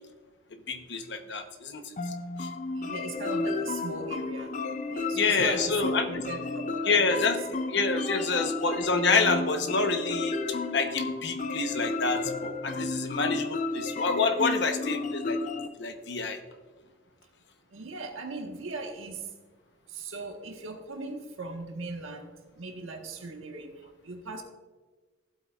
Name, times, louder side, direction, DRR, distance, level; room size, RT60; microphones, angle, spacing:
voice 1, 0.7-1.8 2.4-2.5 5.1-6.2 6.8-15.4 15.8-16.4, left 4 dB, 60° left, 7 dB, 0.9 m, -28 dB
sound 1, 2.0-15.7, left 3 dB, 35° left, 0.4 m, -33 dB
voice 2, 2.7-4.6 4.9-7.2 8.2-8.4 17.7-19.3 19.9-24.4, right 3 dB, 85° right, 3 dB, 1.4 m, -39 dB
15.0 x 8.2 x 2.4 m, 1.4 s
head